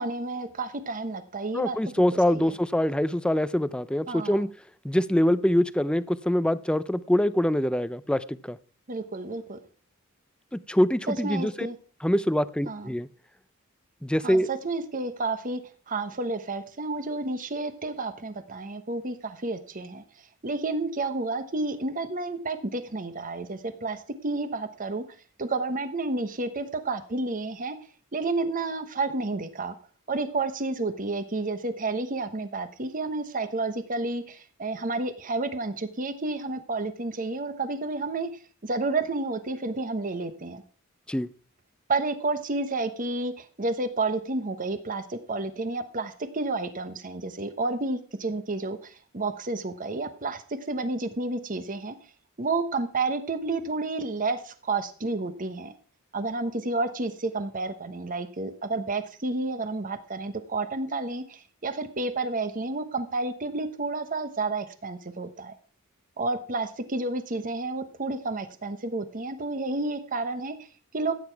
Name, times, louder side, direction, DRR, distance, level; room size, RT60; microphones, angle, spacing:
voice 1, 0.0-1.8 2.3-2.6 4.1-4.4 8.9-9.6 11.1-11.8 12.7-12.9 14.2-15.6 15.9-20.0 20.4-25.0 25.4-27.8 28.1-29.8 30.1-38.3 38.6-40.6 41.9-52.0 52.4-55.7 56.1-65.5 66.2-70.6 70.9-71.1, right 3 dB, 40° right, 10 dB, 1.1 m, -30 dB
voice 2, 1.5-4.5 4.8-8.6 10.5-11.7 12.0-13.1 14.0-14.5 41.1-41.3, equal, 5° left, 15 dB, 0.5 m, -24 dB
14.5 x 9.1 x 4.6 m, 0.41 s
head